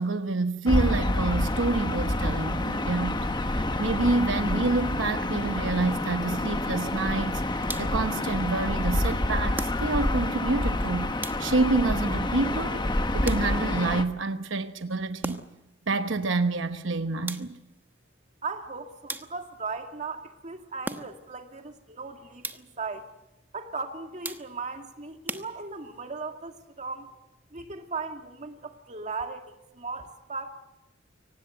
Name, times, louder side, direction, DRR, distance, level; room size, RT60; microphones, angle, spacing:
voice 1, 0.0-11.1 11.4-12.9 13.1-15.4 15.9-17.6, right 3 dB, 85° right, 1.0 m, -28 dB
Gull seagull / Ocean, 0.7-14.1, left 1 dB, 25° left, 1.1 m, -28 dB
sound 1, 7.6-8.1 9.5-10.2 11.2-11.8 13.2-13.8 15.2-15.7 17.3-17.8 19.1-19.7 20.8-21.4 22.4-22.9 24.2-24.8 25.3-26.0, right 2 dB, 10° right, 1.1 m, -39 dB
voice 2, 18.4-23.1 23.5-27.1 27.5-30.5, right 4 dB, 40° right, 2.3 m, -37 dB
24.0 x 18.5 x 7.9 m
head